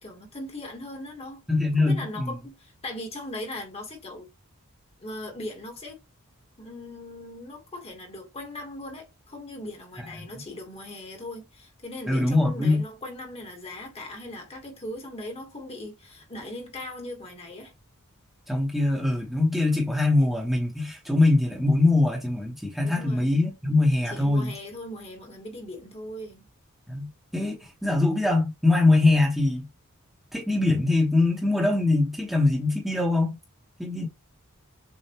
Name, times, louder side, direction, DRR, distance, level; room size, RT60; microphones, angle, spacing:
voice 1, 0.0-1.4 1.8-4.3 5.0-6.0 6.6-17.7 22.8-23.4 24.1-26.5 34.0-34.1, left 1 dB, 30° left, 1.4 m, -39 dB
voice 2, 1.5-2.4 10.0-10.1 12.1-12.8 18.5-24.5 26.9-29.6 30.3-33.4 33.8-34.1, left 2 dB, ahead, 1.1 m, -23 dB
6.6 x 2.5 x 3.0 m
head